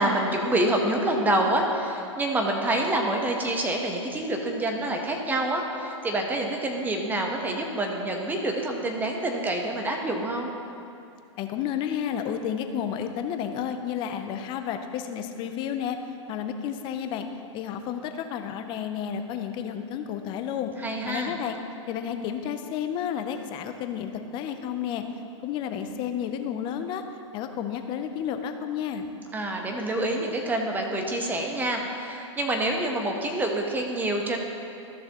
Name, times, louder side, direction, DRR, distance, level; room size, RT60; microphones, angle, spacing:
voice 1, 0.0-10.5 20.8-21.4 29.3-34.4, right 1 dB, 10° right, 2 dB, 1.0 m, -27 dB
voice 2, 11.4-16.0 16.3-17.3 17.5-20.7 21.0-21.6 21.9-25.0 25.4-27.0 27.3-29.1, left 8 dB, 30° left, 7 dB, 0.6 m, -31 dB
13.5 x 6.3 x 3.0 m, 2.6 s
hypercardioid pair, 125°, 16 cm